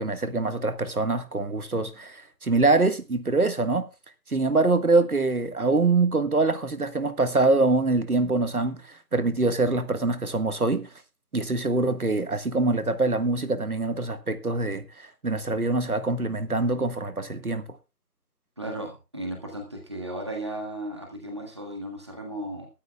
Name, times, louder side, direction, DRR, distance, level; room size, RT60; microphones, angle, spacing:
voice 1, 0.0-3.9 4.3-10.9 11.3-17.6, right 3 dB, 60° right, 1.8 m, -24 dB
voice 2, 18.6-22.7, right 1 dB, 15° right, 1.7 m, -35 dB
22.5 x 12.0 x 2.3 m
figure-of-eight pair, 170°, 49 cm